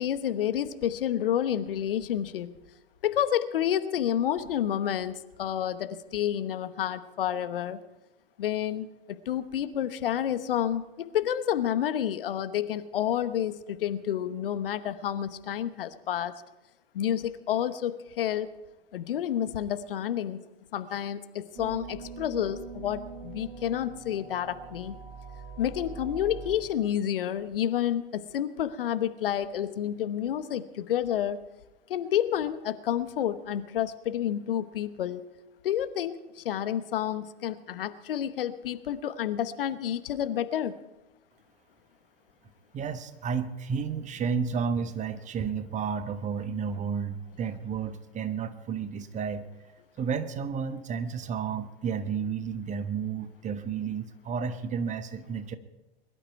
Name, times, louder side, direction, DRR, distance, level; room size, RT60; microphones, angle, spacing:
voice 1, 0.0-2.5 3.0-7.8 8.4-16.3 16.9-18.5 18.9-20.4 20.7-25.0 25.6-31.4 31.9-35.2 35.6-40.7, left 10 dB, 65° left, 13 dB, 1.0 m, -29 dB
sound 1, 21.6-26.6, right 5 dB, 40° right, 3.8 m, -43 dB
voice 2, 42.7-49.4 50.0-55.6, right 6 dB, 25° right, 11 dB, 1.2 m, -32 dB
22.0 x 12.0 x 4.6 m, 1.1 s
figure-of-eight pair, 95°, 30 cm